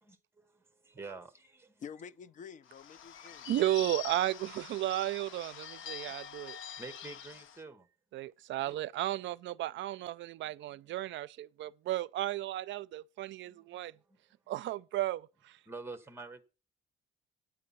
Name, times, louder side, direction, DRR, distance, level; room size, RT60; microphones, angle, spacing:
voice 1, 0.0-1.8 6.8-7.9 10.4-11.0 13.4-13.7 13.9-14.2 15.7-16.4, right 3 dB, 10° right, 1.1 m, -48 dB
voice 2, 1.8-3.5 8.6-8.8, left 7 dB, 40° left, 0.5 m, -48 dB
Bird / Bell, 2.7-7.6, left 10 dB, 70° left, 0.9 m, -45 dB
voice 3, 3.5-6.6 8.1-13.9 14.5-15.3, right 14 dB, 65° right, 0.4 m, -34 dB
9.5 x 8.5 x 5.6 m
cardioid pair, 160°, 21 cm